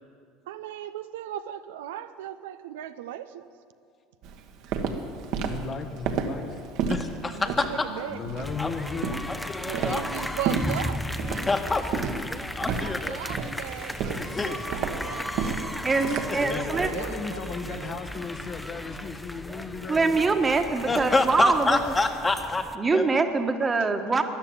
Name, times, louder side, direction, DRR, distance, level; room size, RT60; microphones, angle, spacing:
voice 1, 0.5-3.5 7.2-8.2 9.6-11.1 12.8-15.8 16.3-18.0, right 12 dB, 80° right, 10 dB, 0.6 m, -38 dB
Walk footsteps, 4.2-17.0, right 5 dB, 65° right, 1.4 m, -32 dB
voice 2, 5.4-6.7 8.1-9.1 12.8-12.9 14.1-14.6 16.0-20.4, left 5 dB, 45° left, 6 dB, 1.5 m, -36 dB
voice 3, 6.9-7.9 8.6-8.7 9.3-10.0 11.3-12.2 12.6-13.2 14.4-14.5 16.3-16.9 20.9-22.6 22.9-23.1, left 3 dB, 20° left, 5 dB, 1.7 m, -27 dB
sound 1, 8.4-22.7, left 1 dB, 5° left, 0.9 m, -36 dB
voice 4, 15.8-16.9 19.9-21.8 22.8-24.2, right 4 dB, 25° right, 6 dB, 1.5 m, -24 dB
13.5 x 11.0 x 9.0 m, 2.3 s
hypercardioid pair, 80°, 0 cm